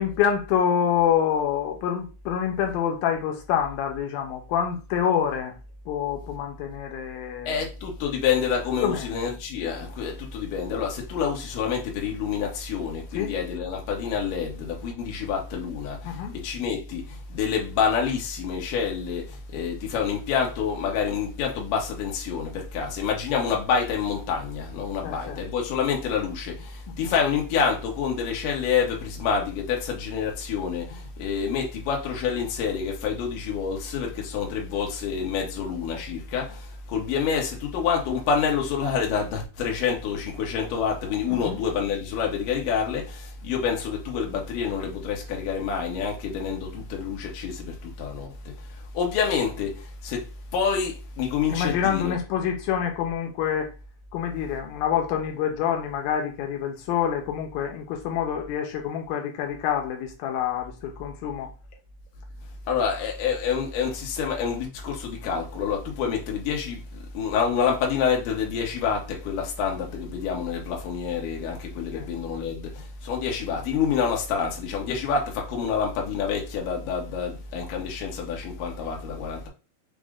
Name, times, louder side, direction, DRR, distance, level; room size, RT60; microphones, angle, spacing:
voice 1, 0.0-5.6 5.9-7.6 8.8-9.2 13.1-13.4 16.0-16.4 25.0-25.4 26.9-27.1 41.3-41.6 51.5-53.7 54.1-61.5 71.9-72.1, left 8 dB, 90° left, 2.5 m, -27 dB
voice 2, 7.5-48.3 48.7-52.2 62.7-79.5, left 6 dB, 70° left, 2.4 m, -27 dB
6.2 x 2.1 x 3.5 m
omnidirectional pair, 4.2 m